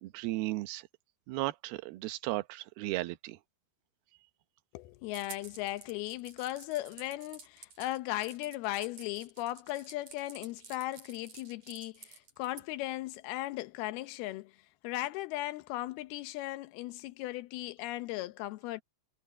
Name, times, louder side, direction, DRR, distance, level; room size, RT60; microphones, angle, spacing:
voice 1, 0.0-0.9 1.3-3.4, right 18 dB, 75° right, 2.8 m, -35 dB
voice 2, 4.7-14.5 14.8-18.8, left 16 dB, 80° left, 2.7 m, -37 dB
sound 1, 5.1-12.6, right 5 dB, 45° right, 4.8 m, -51 dB
omnidirectional pair, 4.6 m